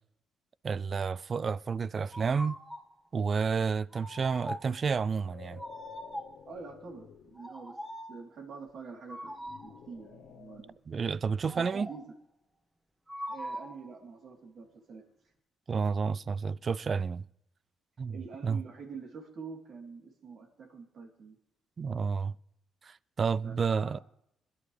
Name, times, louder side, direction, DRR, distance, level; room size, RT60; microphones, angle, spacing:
voice 1, 0.6-2.6 3.1-5.6 10.9-11.9 15.7-17.2 18.0-18.2 18.4-18.6 21.8-22.3 22.8-24.0, right 5 dB, 40° right, 0.4 m, -30 dB
sound 1, 2.1-2.9 3.9-4.8 5.6-6.5 7.4-8.2 9.1-9.8 11.4-12.1 13.1-13.9, equal, 10° right, 1.6 m, -42 dB
sound 2, 5.0-7.4 9.2-10.8, left 8 dB, 85° left, 0.8 m, -52 dB
voice 2, 6.4-7.8 8.1-9.3 9.6-10.7 11.5-12.0 13.3-15.0 18.1-21.3 23.4-24.0, right 5 dB, 60° right, 3.4 m, -46 dB
21.5 x 11.0 x 3.3 m
cardioid pair, 90°, 0 cm